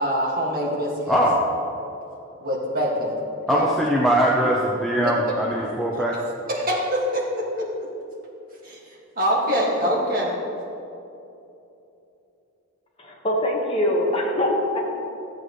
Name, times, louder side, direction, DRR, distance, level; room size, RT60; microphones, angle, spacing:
voice 1, 0.0-1.1 2.4-3.1 3.5-3.7 5.0-5.3 6.5-7.7 8.6-10.4, equal, 40° right, -4 dB, 2.0 m, -24 dB
voice 2, 1.1-1.5 3.5-6.1, equal, ahead, -5 dB, 0.7 m, -21 dB
voice 3, 13.0-14.8, left 1 dB, 25° left, -2 dB, 1.4 m, -23 dB
14.0 x 8.0 x 3.2 m, 2.8 s
head